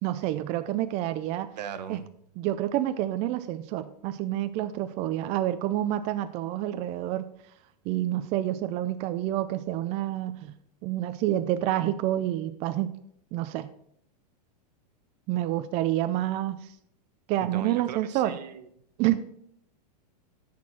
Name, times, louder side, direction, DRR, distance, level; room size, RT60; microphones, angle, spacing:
voice 1, 0.0-1.5 1.9-2.0 2.4-7.3 7.9-10.5 10.8-12.9 13.3-13.7 15.3-16.7 17.3-18.4 19.0-19.2, right 13 dB, 30° right, 10 dB, 0.4 m, -28 dB
voice 2, 1.6-2.1 17.4-18.7, right 8 dB, 75° right, 11 dB, 1.0 m, -38 dB
9.8 x 4.4 x 6.1 m, 0.71 s
hypercardioid pair, 140°, 21 cm